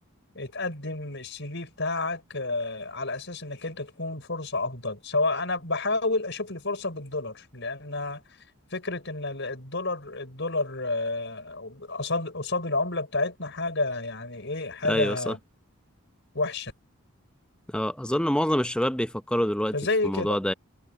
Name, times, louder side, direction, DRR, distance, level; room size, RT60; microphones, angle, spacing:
voice 1, 0.3-8.2 8.7-15.4 16.3-16.7 19.7-20.3, left 2 dB, 55° left, 5.8 m, -30 dB
voice 2, 14.9-15.3 17.7-19.7 20.0-20.5, equal, 5° left, 0.7 m, -26 dB
head